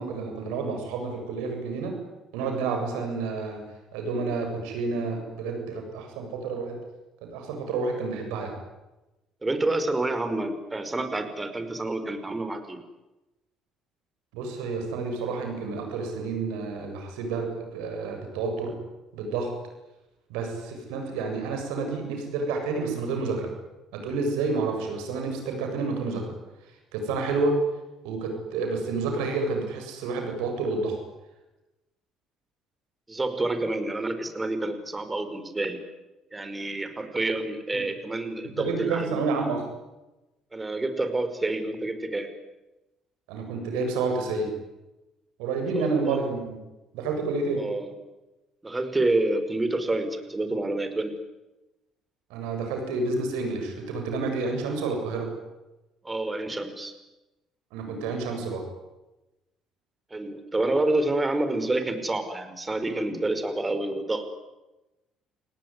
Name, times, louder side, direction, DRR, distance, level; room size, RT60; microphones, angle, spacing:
voice 1, 0.0-2.0 2.3-3.6 3.9-6.8 7.3-8.6 14.3-18.7 19.1-19.5 20.3-23.5 23.9-26.3 26.9-27.6 28.0-31.0 38.6-39.6 43.3-44.5 45.4-46.6 46.9-47.7 52.3-55.3 57.7-58.6, right 4 dB, 75° right, 4 dB, 7.7 m, -29 dB
voice 2, 9.4-12.8 33.1-35.8 36.3-39.2 40.5-42.3 45.7-46.2 47.6-47.9 48.6-51.1 56.0-56.9 60.1-64.2, right 2 dB, 20° right, 9 dB, 5.2 m, -28 dB
29.5 x 18.5 x 9.9 m, 1.0 s
hypercardioid pair, 60°, 0 cm